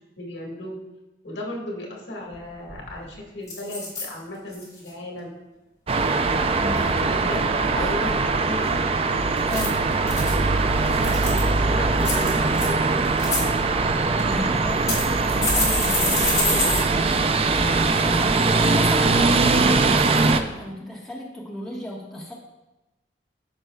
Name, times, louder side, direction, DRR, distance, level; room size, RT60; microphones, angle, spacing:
voice 1, 0.2-0.8 1.2-5.4 6.7-8.1 8.4-8.8 10.8-13.0, left 1 dB, 80° left, -1 dB, 1.7 m, -35 dB
sound 1, 2.3-2.4 2.7-3.0 3.5-4.1 4.5-4.9 9.4-10.3 10.8-11.5 12.0-12.7 13.0-13.4 14.2-14.3 14.9-16.8 17.1-17.2 17.6-17.7, left 2 dB, 20° left, 2.5 m, -26 dB
sound 2, 5.9-20.4, right 3 dB, 35° right, 0.4 m, -21 dB
voice 2, 6.6-8.2 9.4-9.8 14.2-17.2 17.5-22.3, equal, 5° left, -4 dB, 1.3 m, -34 dB
14.0 x 5.3 x 2.2 m, 1.0 s
head